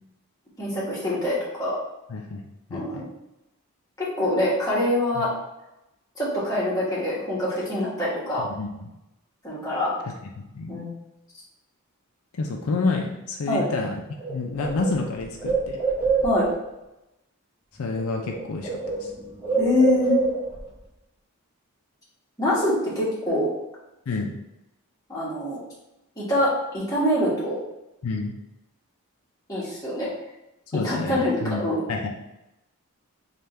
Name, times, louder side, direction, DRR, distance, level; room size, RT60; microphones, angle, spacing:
voice 1, 0.6-1.8 2.7-3.0 4.0-5.3 6.2-8.4 9.4-9.9 10.7-10.9 13.5-13.6 16.2-16.5 19.6-20.2 22.4-23.5 25.1-25.6 26.2-27.6 29.5-30.1 30.7-31.8, left 1 dB, 15° left, -8 dB, 1.2 m, -24 dB
voice 2, 2.1-2.4 2.7-3.0 5.2-5.3 8.4-8.9 10.5-10.7 12.3-14.0 14.3-15.8 17.8-19.1 24.1-24.3 28.0-28.3 30.7-31.6 31.9-32.1, left 3 dB, 75° left, 2 dB, 0.4 m, -29 dB
Bird, 13.8-13.9 14.2-16.7 17.8-18.0 18.3-20.7, right 4 dB, 10° right, 0.8 m, -27 dB
3.4 x 2.4 x 4.2 m, 0.92 s
head